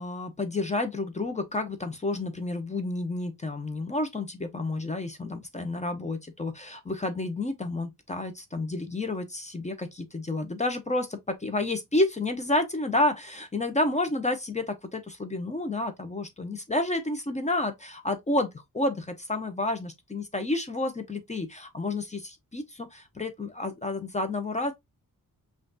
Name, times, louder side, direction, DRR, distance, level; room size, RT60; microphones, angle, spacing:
voice 1, 0.0-24.7, left 2 dB, 20° left, 0.7 m, -30 dB
5.6 x 2.5 x 2.6 m
wide cardioid pair, 120°, 35 cm